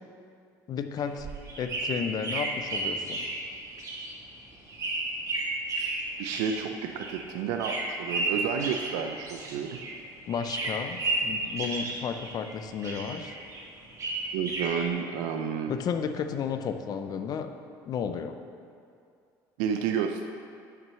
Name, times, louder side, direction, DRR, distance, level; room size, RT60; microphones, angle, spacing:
voice 1, 0.7-1.3 1.6-3.2 10.3-13.3 15.7-17.5 17.8-18.3, left 7 dB, 50° left, 8 dB, 0.6 m, -32 dB
sound 1, 1.0-10.0 10.3-12.5 12.8-14.9, right 2 dB, 40° right, 1.8 m, -33 dB
voice 2, 6.2-9.8 14.3-15.7 19.6-20.3, right 7 dB, 85° right, 5 dB, 0.5 m, -30 dB
6.1 x 6.0 x 6.8 m, 2.4 s
supercardioid pair, 95°, 9 cm